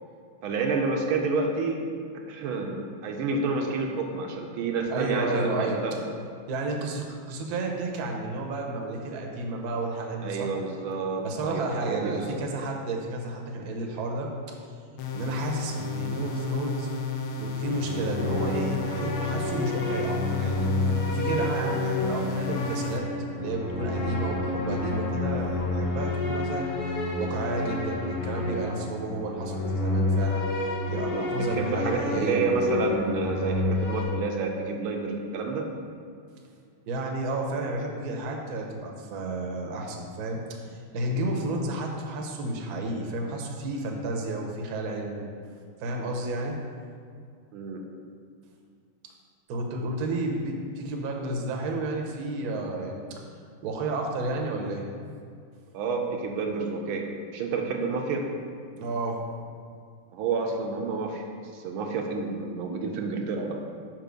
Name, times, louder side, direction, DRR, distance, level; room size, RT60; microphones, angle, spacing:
voice 1, 0.4-1.8 2.3-6.1 10.2-12.3 31.4-35.7 47.5-47.8 55.7-58.3 60.1-63.6, right 4 dB, 85° right, 2 dB, 1.5 m, -29 dB
voice 2, 4.9-5.8 6.5-10.5 11.2-14.3 15.1-16.9 17.4-23.1 23.3-26.7 27.2-30.4 30.9-32.4 36.9-40.4 40.7-45.2 45.8-46.6 49.5-53.0 53.6-54.8 58.8-59.2, right 2 dB, 60° right, 1 dB, 1.1 m, -31 dB
sound 1, 15.0-23.0, left 4 dB, 80° left, 1.5 m, -33 dB
sound 2, 17.6-34.0, left 2 dB, 55° left, 1.4 m, -29 dB
5.5 x 4.6 x 5.1 m, 2.2 s
omnidirectional pair, 2.3 m